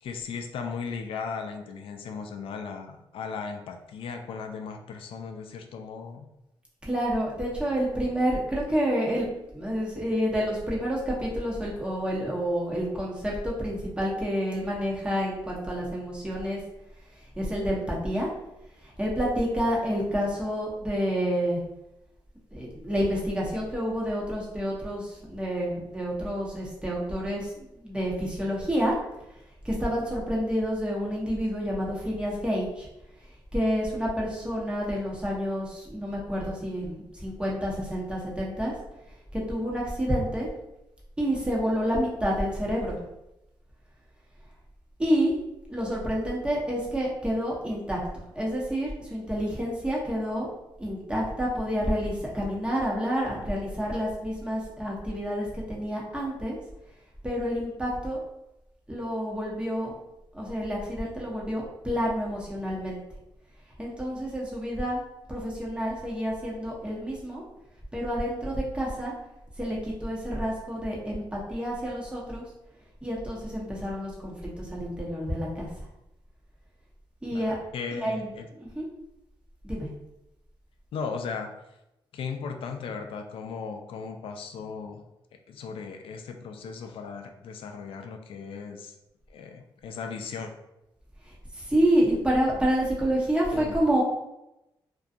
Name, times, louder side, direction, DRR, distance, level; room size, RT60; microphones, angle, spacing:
voice 1, 0.0-6.3 77.3-78.5 80.9-81.5 82.1-85.0 85.5-89.0 89.3-90.5 93.5-93.8, left 5 dB, 70° left, 5 dB, 0.4 m, -37 dB
voice 2, 6.8-9.3 9.5-16.6 17.1-18.3 18.8-21.6 22.5-29.0 29.6-32.9 33.5-38.7 39.3-40.5 41.2-43.0 45.0-45.3 45.7-50.5 50.8-56.6 57.2-58.2 58.9-59.9 60.3-63.0 63.8-65.0 65.3-67.4 67.9-69.1 69.6-72.4 73.0-75.9 77.2-77.6 77.9-78.3 78.6-78.9 79.6-79.9 91.2-94.0, equal, 10° right, -4 dB, 0.9 m, -29 dB
2.6 x 2.3 x 2.4 m, 0.90 s
cardioid pair, 75°, 9 cm